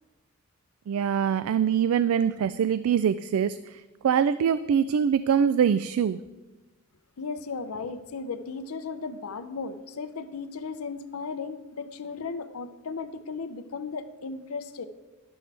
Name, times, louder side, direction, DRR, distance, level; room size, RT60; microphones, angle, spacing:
voice 1, 0.9-3.6 4.0-6.2, right 8 dB, 75° right, 14 dB, 0.3 m, -23 dB
voice 2, 7.2-14.9, left 4 dB, 80° left, 9 dB, 0.6 m, -36 dB
11.5 x 11.5 x 3.4 m, 1.1 s
head